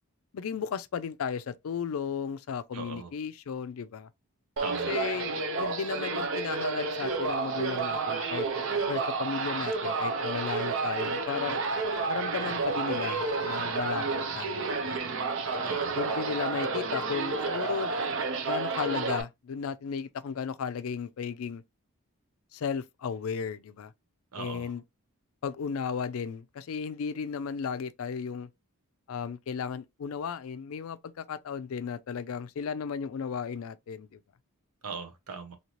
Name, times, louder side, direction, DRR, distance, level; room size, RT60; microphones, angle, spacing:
voice 1, 0.3-4.1 4.9-8.5 8.9-11.6 12.1-14.0 14.3-15.0 15.9-17.9 18.4-21.6 22.5-23.9 24.4-24.8 25.4-28.5 29.1-34.2, left 6 dB, 70° left, 0.4 m, -35 dB
voice 2, 2.7-3.1 4.6-4.9 15.6-16.0 24.3-24.7 34.8-35.6, right 4 dB, 90° right, 0.8 m, -39 dB
sound 1, 4.6-19.2, right 4 dB, 60° right, 0.5 m, -30 dB
3.0 x 2.8 x 2.8 m
head